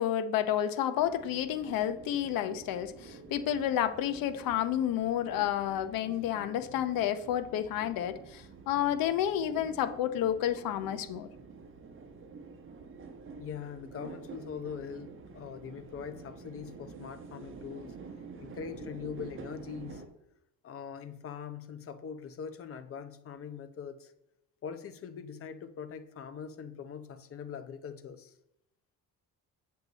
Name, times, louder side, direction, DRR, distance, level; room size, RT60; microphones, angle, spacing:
voice 1, 0.0-11.3, left 10 dB, 75° left, 11 dB, 0.8 m, -30 dB
sound 1, 1.0-20.1, right 4 dB, 35° right, 1.2 m, -48 dB
voice 2, 13.4-18.0 18.4-20.0 20.6-24.1 24.6-28.3, left 7 dB, 40° left, 11 dB, 0.8 m, -42 dB
8.2 x 6.7 x 4.1 m, 0.81 s
cardioid pair, 130°, 35 cm